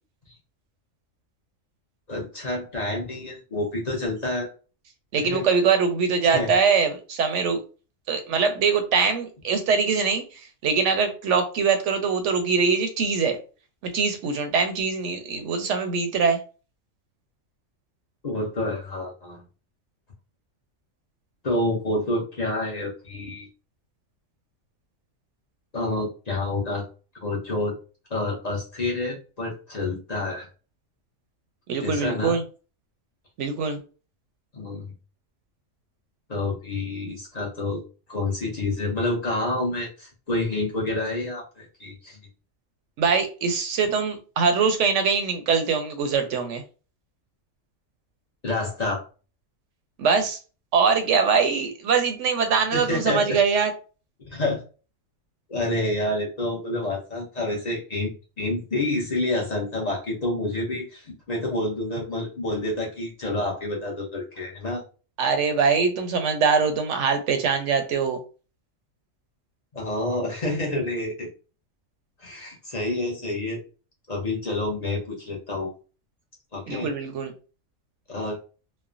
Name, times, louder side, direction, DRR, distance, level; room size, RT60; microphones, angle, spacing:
voice 1, 2.1-4.5 5.2-5.5 6.2-6.5 18.2-19.4 21.4-23.5 25.7-26.9 27.1-27.7 28.1-30.5 31.8-32.4 34.5-34.9 36.3-37.8 38.1-42.2 48.4-49.0 52.7-53.4 54.2-54.6 55.5-58.1 58.4-64.8 69.7-71.3 72.2-73.6 74.1-75.7 76.5-76.9 78.1-78.4, left 2 dB, 40° left, -2 dB, 0.7 m, -28 dB
voice 2, 5.1-7.6 8.1-13.4 13.8-16.4 31.7-32.4 33.4-33.8 43.0-46.6 50.0-50.4 50.7-53.7 65.2-68.2 76.7-77.3, right 5 dB, 70° right, 7 dB, 0.8 m, -23 dB
3.2 x 2.0 x 2.4 m, 0.35 s
omnidirectional pair, 1.4 m